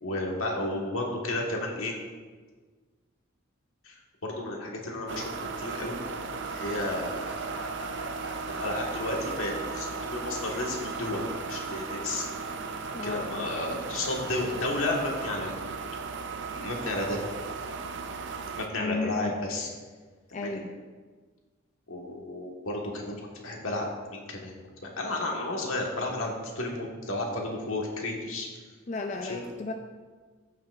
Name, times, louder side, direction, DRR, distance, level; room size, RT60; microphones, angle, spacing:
voice 1, 0.0-1.9 3.8-3.9 4.2-5.2 5.6-6.0 6.5-12.2 13.0-15.5 16.5-17.2 18.5-19.7 20.4-20.6 21.9-24.5 24.8-28.5 29.2-29.4, left 2 dB, 80° left, -1 dB, 1.6 m, -32 dB
sound 1, 5.1-18.7, right 4 dB, 60° right, 0.6 m, -36 dB
voice 2, 12.9-13.5 18.8-19.3 20.3-20.7 28.9-29.7, left 3 dB, 35° left, 3 dB, 0.4 m, -33 dB
15.0 x 5.9 x 2.5 m, 1.4 s
head